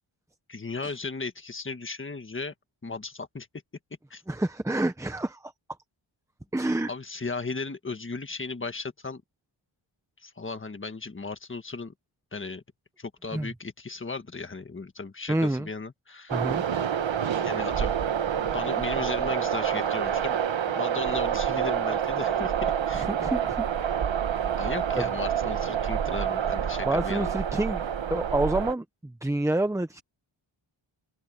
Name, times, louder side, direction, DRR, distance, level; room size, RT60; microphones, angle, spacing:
voice 1, 0.5-2.5 2.8-3.5 4.1-4.2 6.9-9.2 10.2-11.9 12.3-12.6 13.0-16.4 17.4-18.0 18.4-20.4 20.6-23.1 24.6-27.3, left 4 dB, 25° left, 1.6 m, -36 dB
voice 2, 4.3-5.5 6.5-6.9 13.3-13.5 15.3-15.7 16.3-16.6 22.9-23.7 25.0-25.1 26.8-30.0, right 1 dB, 5° right, 0.7 m, -28 dB
sound 1, 16.3-28.7, right 8 dB, 65° right, 1.2 m, -27 dB
open air
wide cardioid pair, 175°, 49 cm